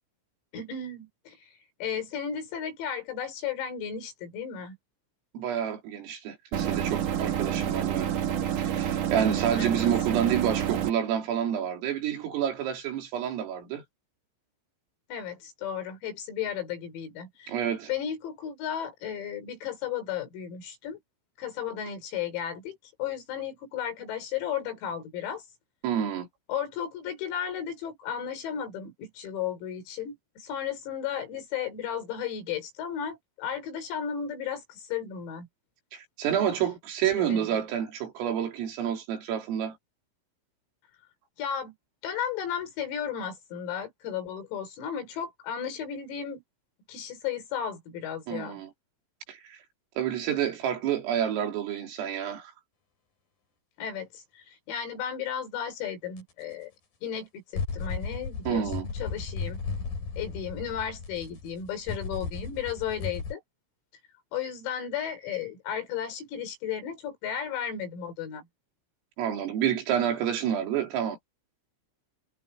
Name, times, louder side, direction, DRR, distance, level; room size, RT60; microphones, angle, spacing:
voice 1, 0.5-1.5 1.8-4.8 9.5-9.9 15.1-17.6 17.9-21.0 21.4-25.4 26.5-35.5 37.1-37.5 41.4-41.7 42.0-46.4 46.9-48.6 53.8-56.7 57.0-59.6 60.2-63.4 64.3-68.5, left 8 dB, 85° left, 7.8 m, -34 dB
voice 2, 5.3-8.1 8.6-13.8 17.5-17.9 25.8-26.3 35.9-39.8 48.3-48.7 49.3-49.6 50.0-52.5 58.5-58.9 69.2-71.2, right 9 dB, 75° right, 6.2 m, -29 dB
sound 1, 6.5-10.9, right 9 dB, 55° right, 2.5 m, -28 dB
sound 2, 56.2-56.3 57.5-63.3, left 5 dB, 45° left, 6.3 m, -35 dB
omnidirectional pair, 6.0 m